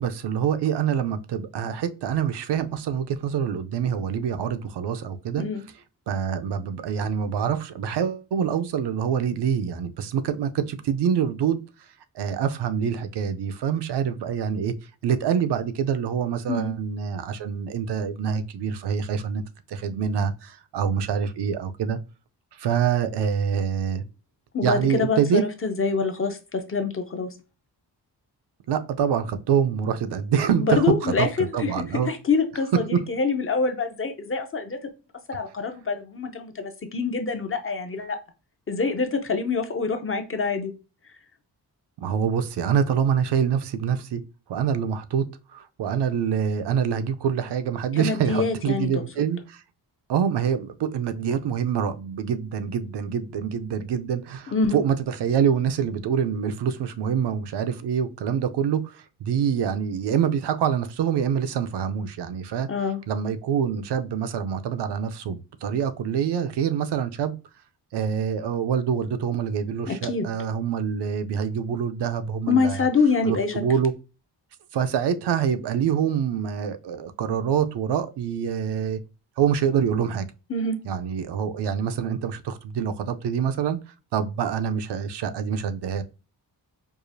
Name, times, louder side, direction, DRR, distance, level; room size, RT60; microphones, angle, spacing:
voice 1, 0.0-5.5 6.1-11.6 12.1-14.7 15.0-19.4 19.7-22.0 22.5-24.0 24.6-25.4 28.7-32.1 32.7-33.0 42.0-44.2 44.5-49.6 50.1-62.7 63.1-67.4 67.9-72.9 73.2-73.9 74.7-79.0 79.4-80.3 80.8-83.8 84.1-86.0, right 8 dB, 80° right, 0.5 m, -25 dB
voice 2, 24.5-27.3 30.6-31.7 32.0-34.8 35.3-38.2 38.7-40.7 47.9-49.0 54.5-54.8 62.7-63.0 69.9-70.3 72.5-73.6 80.5-80.8, left 4 dB, 35° left, 0.5 m, -25 dB
4.8 x 2.4 x 2.5 m
wide cardioid pair, 170°, 41 cm